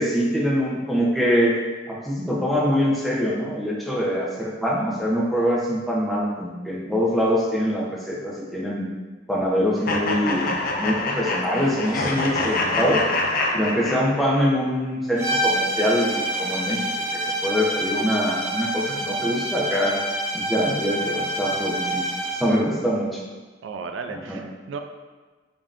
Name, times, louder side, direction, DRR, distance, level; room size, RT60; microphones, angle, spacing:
voice 1, 0.0-1.5 1.9-8.9 9.3-10.5 10.8-13.0 13.5-20.0 20.3-23.2 24.1-24.4, equal, ahead, -5 dB, 0.6 m, -24 dB
sound 1, 9.9-14.5, left 2 dB, 50° left, 0.4 m, -26 dB
sound 2, 15.2-22.6, right 1 dB, 20° right, 1.3 m, -27 dB
voice 2, 23.6-24.8, right 5 dB, 90° right, 6 dB, 0.3 m, -34 dB
5.1 x 2.7 x 2.5 m, 1.3 s
head